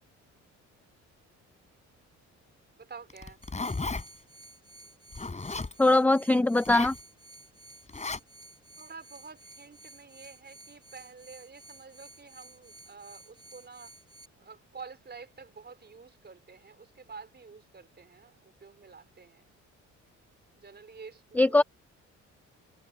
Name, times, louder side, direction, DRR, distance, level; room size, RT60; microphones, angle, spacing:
voice 1, 2.7-3.4 8.8-13.9 14.4-19.4 20.6-21.6, right 5 dB, 35° right, 4.5 m, -49 dB
Zipper (clothing), 3.1-4.0 5.1-5.7 6.5-7.0 7.9-8.2, left 3 dB, 25° left, 5.8 m, -34 dB
sound 1, 3.4-14.3, right 2 dB, 15° right, 4.9 m, -53 dB
voice 2, 5.8-7.0 21.4-21.6, left 2 dB, 5° left, 0.5 m, -21 dB
cardioid pair, 90°, 30 cm